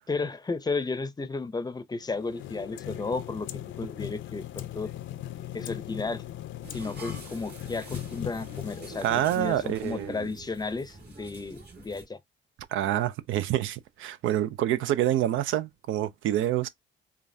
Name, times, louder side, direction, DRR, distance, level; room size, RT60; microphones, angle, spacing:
voice 1, 0.1-4.9 5.5-6.2 6.7-9.1 9.3-12.2, left 3 dB, 20° left, 0.5 m, -33 dB
sound 1, 2.0-10.3, left 12 dB, 70° left, 0.5 m, -39 dB
sound 2, 6.6-12.1, right 3 dB, 55° right, 1.7 m, -46 dB
voice 2, 9.0-10.3 12.7-16.7, right 12 dB, 80° right, 0.4 m, -27 dB
5.0 x 2.4 x 2.6 m
cardioid pair, 90°, 20 cm